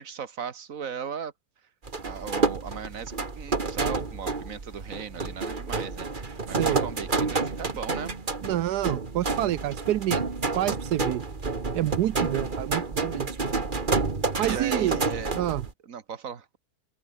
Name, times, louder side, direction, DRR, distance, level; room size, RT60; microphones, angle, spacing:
voice 1, 0.0-1.3 2.0-8.1 14.4-15.3 15.8-16.6, right 7 dB, 60° right, 1.9 m, -37 dB
sound 1, 1.9-15.7, right 3 dB, 30° right, 2.0 m, -29 dB
voice 2, 6.5-6.8 8.4-10.2 10.5-11.2 11.7-13.3 14.4-15.0 15.4-15.6, right 13 dB, 85° right, 1.3 m, -27 dB
open air
omnidirectional pair, 1.7 m